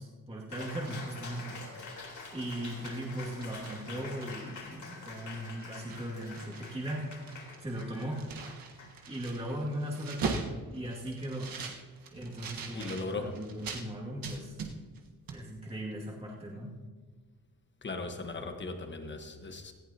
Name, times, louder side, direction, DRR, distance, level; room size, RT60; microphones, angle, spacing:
voice 1, 0.0-2.0 2.3-7.2 7.6-8.2 9.1-11.6 12.1-14.6 15.3-16.7, right 1 dB, 15° right, -4 dB, 2.3 m, -38 dB
Cheering, 0.5-9.5, left 3 dB, 55° left, 3.8 m, -46 dB
sound 1, 2.6-4.6 5.1-5.2 5.5-6.8 7.0-13.9 14.2-15.0 15.3-15.4, right 5 dB, 75° right, 1.4 m, -41 dB
voice 2, 12.7-13.4 17.8-19.7, left 3 dB, 30° left, 5 dB, 1.3 m, -38 dB
18.0 x 15.0 x 2.9 m, 1.4 s
wide cardioid pair, 145°, 35 cm